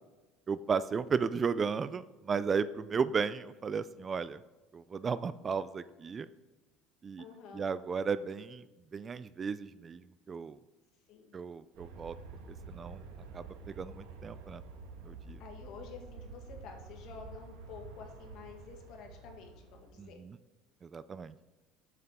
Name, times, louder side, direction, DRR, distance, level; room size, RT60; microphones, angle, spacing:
voice 1, 0.5-4.4 4.7-6.3 7.0-7.2 7.5-8.7 8.9-10.6 11.3-12.2 12.7-13.0 13.3-14.6 15.0-15.4 20.0-20.4 20.8-21.4, right 5 dB, 25° right, 15 dB, 0.3 m, -34 dB
voice 2, 7.2-7.7 11.1-11.3 15.4-20.2, left 5 dB, 60° left, 3 dB, 1.7 m, -49 dB
Aircraft, 11.7-20.1, right 4 dB, 90° right, 1.3 m, -49 dB
8.0 x 7.6 x 3.6 m, 1.2 s
cardioid pair, 130°, 0 cm